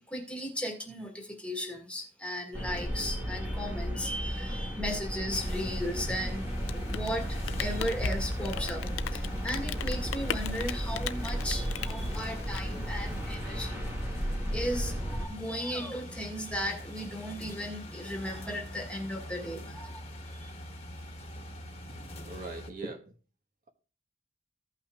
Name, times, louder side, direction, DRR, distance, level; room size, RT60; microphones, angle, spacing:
voice 1, 0.1-13.8 14.5-20.0 20.4-20.5, equal, 5° left, 1.7 m, -36 dB
sound 1, 2.5-15.3, equal, 10° right, 1.8 m, -34 dB
sound 2, 5.3-22.7, equal, 30° left, 1.3 m, -43 dB
Rain, 6.5-13.3, left 8 dB, 80° left, 0.5 m, -38 dB
voice 2, 22.0-23.1, right 2 dB, 45° right, 1.2 m, -42 dB
16.0 x 5.7 x 2.3 m
head